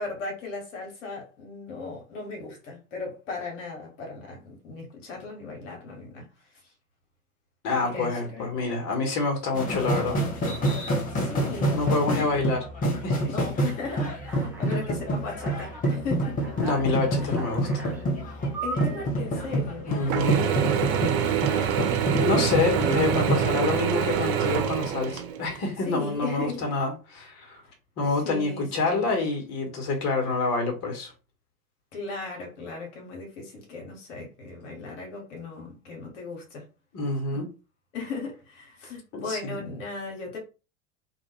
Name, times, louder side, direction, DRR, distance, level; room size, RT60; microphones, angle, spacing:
voice 1, 0.0-6.3 6.5-6.7 7.7-8.6 11.1-11.8 12.1-12.3 13.3-16.4 17.2-17.4 18.6-21.8 22.1-22.2 22.8-23.0 25.8-26.7 27.6-27.7 28.2-29.1 31.9-36.6 37.3-37.5 37.9-40.4, left 3 dB, 60° left, 1.2 m, -37 dB
voice 2, 7.6-10.5 11.7-12.6 13.0-13.3 16.6-17.8 19.9-20.4 22.1-27.6 28.0-31.1 36.9-37.5 39.1-39.6, left 3 dB, 35° left, 1.2 m, -27 dB
sound 1, 9.5-23.5, right 1 dB, 20° left, 0.8 m, -28 dB
Alarm, 13.9-14.9 15.4-15.9 16.4-18.0 18.5-19.1, right 3 dB, 5° right, 0.4 m, -39 dB
Mechanisms / Drill, 20.1-25.6, right 9 dB, 50° right, 0.6 m, -26 dB
2.5 x 2.4 x 3.2 m
figure-of-eight pair, 85°, 43 cm